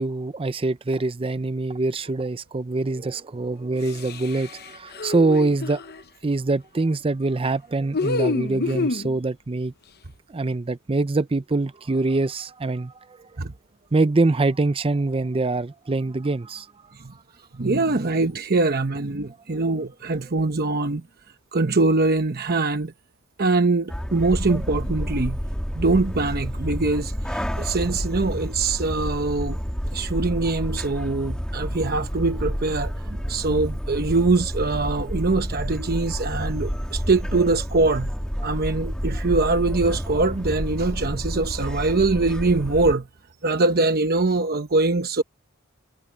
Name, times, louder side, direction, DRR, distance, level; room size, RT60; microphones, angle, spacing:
voice 1, 0.0-5.9 6.2-9.7 10.3-13.3 13.9-16.7 20.4-20.6, right 3 dB, 25° right, 0.5 m, -24 dB
sound 1, 3.8-6.0 7.9-9.1, left 3 dB, 45° left, 0.8 m, -28 dB
voice 2, 17.5-21.0 21.5-22.9 23.4-25.4 25.7-29.6 29.9-38.1 38.4-43.1 43.4-45.2, right 3 dB, 45° right, 1.0 m, -23 dB
sound 2, 23.9-42.9, equal, 5° left, 2.4 m, -29 dB
head